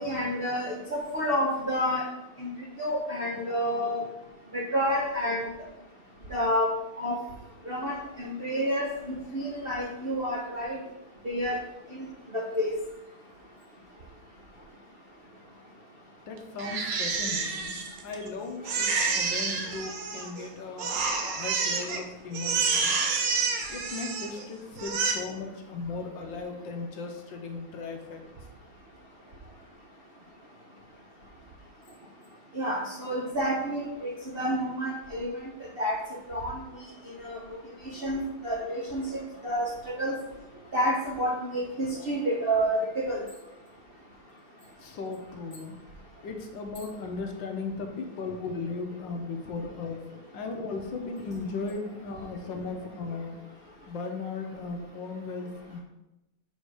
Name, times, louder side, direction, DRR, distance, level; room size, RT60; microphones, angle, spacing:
voice 1, 0.0-2.0 2.4-2.5 2.8-4.0 4.5-5.5 6.3-6.7 7.0-7.1 7.7-10.8 11.2-11.6 12.3-12.7 32.6-35.3 35.8-35.9 36.3-36.5 37.2-37.4 38.0-39.6 40.0-40.1 40.7-43.2, equal, 55° right, -3 dB, 0.6 m, -29 dB
voice 2, 16.3-21.1 21.4-23.0 23.7-28.2 44.8-45.8 46.2-53.4 53.9-55.8, left 4 dB, 70° left, 4 dB, 1.4 m, -37 dB
Crying sobbing, 16.6-18.3 18.7-20.4 20.8-22.0 22.3-24.4 24.8-25.1, right 5 dB, 85° right, 1.8 m, -29 dB
6.8 x 4.3 x 4.8 m, 0.95 s
omnidirectional pair, 2.3 m